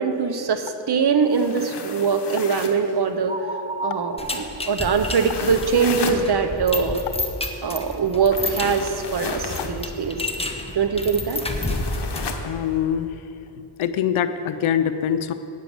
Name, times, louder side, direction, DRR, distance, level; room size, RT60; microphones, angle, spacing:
voice 1, 0.0-3.4 3.8-7.0 7.6-10.2 10.7-11.4, right 5 dB, 55° right, 7 dB, 1.0 m, -22 dB
sound 1, 1.2-2.9 4.9-6.2 8.3-9.8 11.3-12.5, left 5 dB, 55° left, 1.2 m, -33 dB
sound 2, 2.5-2.8 3.3-5.3, right 3 dB, 15° right, 0.6 m, -33 dB
sound 3, 4.2-12.4, left 2 dB, 10° left, 1.1 m, -30 dB
voice 2, 12.4-13.2 13.6-15.3, left 9 dB, 80° left, 11 dB, 0.6 m, -24 dB
9.5 x 7.4 x 7.1 m, 2.9 s
cardioid pair, 60°, 48 cm